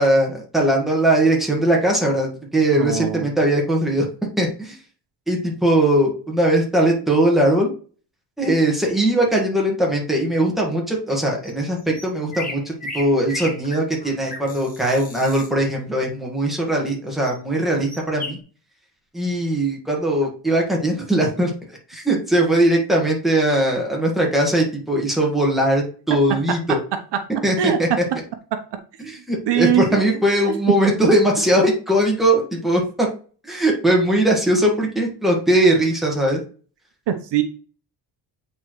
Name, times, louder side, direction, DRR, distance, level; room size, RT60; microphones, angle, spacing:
voice 1, 0.0-4.1 4.4-4.8 5.3-7.7 8.4-18.4 19.1-21.5 21.9-26.8 27.4-27.9 29.0-33.1 33.4-36.4, right 1 dB, ahead, -1 dB, 1.6 m, -20 dB
voice 2, 2.7-3.3 27.6-27.8 29.5-30.0 30.4-30.5 37.1-37.4, right 10 dB, 70° right, 7 dB, 0.9 m, -21 dB
sound 1, 11.4-11.5 11.8-15.5 17.2-17.4 17.7-18.4, left 2 dB, 20° left, 1.4 m, -34 dB
8.5 x 4.4 x 3.1 m, 0.40 s
cardioid pair, 170°, 43 cm